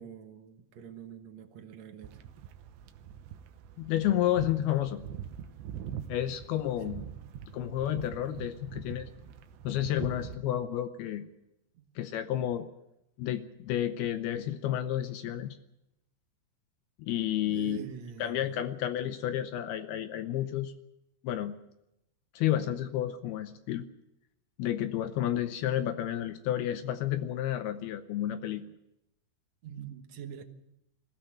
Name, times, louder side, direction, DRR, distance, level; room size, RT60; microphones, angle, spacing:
voice 1, 0.0-2.2 6.8-6.9 11.7-11.9 17.4-18.7 29.6-30.4, right 8 dB, 65° right, 6 dB, 1.8 m, -45 dB
sound 1, 2.0-10.4, right 9 dB, 80° right, 3.2 m, -43 dB
voice 2, 3.8-5.0 6.1-7.0 7.5-9.1 9.6-11.3 12.0-12.7 13.2-15.6 17.0-17.8 18.2-20.7 21.2-21.5 22.3-23.8 24.6-28.6, left 12 dB, 75° left, 9 dB, 2.5 m, -31 dB
20.5 x 15.0 x 9.0 m, 0.88 s
omnidirectional pair, 4.9 m